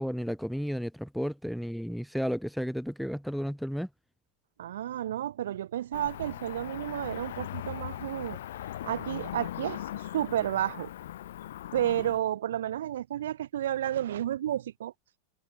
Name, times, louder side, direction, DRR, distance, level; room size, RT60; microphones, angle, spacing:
voice 1, 0.0-3.9, equal, ahead, 0.4 m, -33 dB
voice 2, 4.6-8.4 8.7-10.9 11.7-14.9, right 11 dB, 60° right, 1.3 m, -31 dB
Cricket / Motor vehicle (road), 5.9-12.2, left 12 dB, 60° left, 0.4 m, -39 dB
figure-of-eight pair, 90°, 0 cm